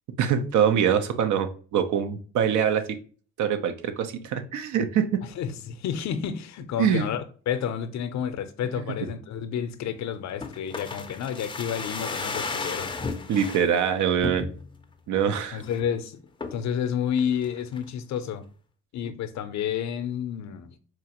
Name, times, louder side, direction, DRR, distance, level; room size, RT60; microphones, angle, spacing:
voice 1, 0.2-2.8 3.4-5.2 6.8-7.1 13.3-14.5 15.1-15.6, right 8 dB, 75° right, 0.6 m, -24 dB
voice 2, 5.3-13.0 15.5-16.2 16.5-18.4 18.9-20.8, left 8 dB, 65° left, 0.5 m, -30 dB
sound 1, 10.4-13.7 14.2-14.8 15.3-15.4 15.6-15.9 16.4-16.7 17.2-17.9 18.2-18.3, left 4 dB, 15° left, 0.4 m, -34 dB
4.3 x 2.5 x 2.8 m
cardioid pair, 90°, 30 cm